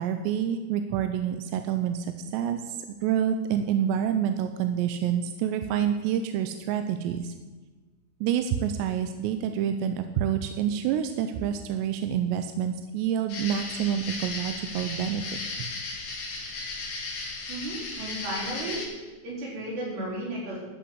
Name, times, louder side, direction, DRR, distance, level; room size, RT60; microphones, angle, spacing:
voice 1, 0.0-7.3 8.2-15.2 15.6-15.7, right 9 dB, 80° right, 8 dB, 2.7 m, -28 dB
sound 1, 13.3-18.9, left 3 dB, 60° left, 4.4 m, -35 dB
voice 2, 17.5-18.8 19.2-20.6, right 1 dB, 65° right, -5 dB, 6.1 m, -34 dB
13.5 x 6.5 x 7.8 m, 1.3 s
omnidirectional pair, 5.2 m